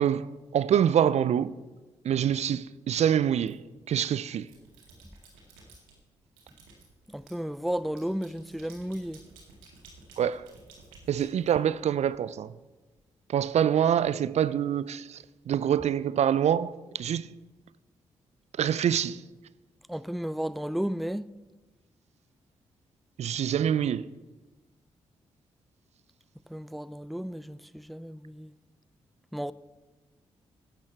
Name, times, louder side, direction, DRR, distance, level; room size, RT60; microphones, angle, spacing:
voice 1, 0.0-1.5 2.0-3.6 3.9-4.5 10.2-10.4 11.1-12.5 13.3-17.3 18.6-19.2 23.2-24.1, right 9 dB, 60° right, 0.4 m, -25 dB
sound 1, 3.5-4.0 4.4-6.0 6.4-12.1, right 3 dB, 90° right, 2.0 m, -54 dB
voice 2, 7.1-9.2 19.9-21.3 26.5-28.5 29.3-29.5, equal, ahead, 0.4 m, -33 dB
12.0 x 9.1 x 4.6 m
hypercardioid pair, 40°, 13 cm